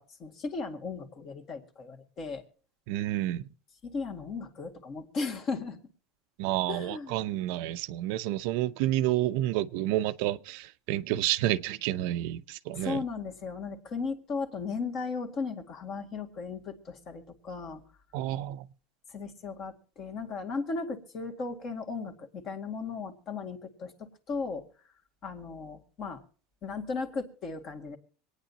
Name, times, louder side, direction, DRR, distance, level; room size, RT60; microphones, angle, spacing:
voice 1, 0.0-2.4 3.8-5.8 6.7-7.2 12.7-17.8 19.1-23.9 24.3-24.7 25.2-26.2 26.6-28.0, left 4 dB, 35° left, 2.1 m, -36 dB
voice 2, 2.9-3.5 6.4-13.0 18.1-18.7, right 14 dB, 65° right, 0.6 m, -30 dB
25.0 x 9.6 x 2.9 m
supercardioid pair, 150°, 0 cm